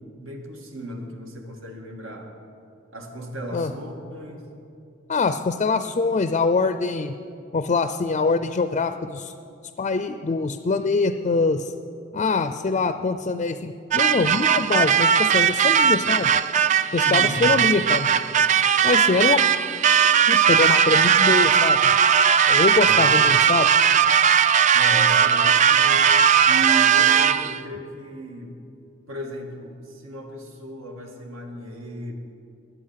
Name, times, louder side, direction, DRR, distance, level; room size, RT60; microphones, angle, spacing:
voice 1, 0.2-2.3 2.9-4.5 17.0-17.4 22.8-23.0 24.7-26.1 26.4-28.5 29.1-32.1, right 1 dB, 90° right, 2 dB, 1.8 m, -35 dB
voice 2, 5.1-7.2 7.5-9.3 9.8-11.7 12.1-16.4 16.9-18.1 18.8-19.4 20.3-21.9 22.5-23.7, left 4 dB, 35° left, 10 dB, 0.4 m, -24 dB
sound 1, 13.9-27.6, right 8 dB, 40° right, 0.3 m, -18 dB
21.0 x 8.1 x 5.7 m, 2.6 s
head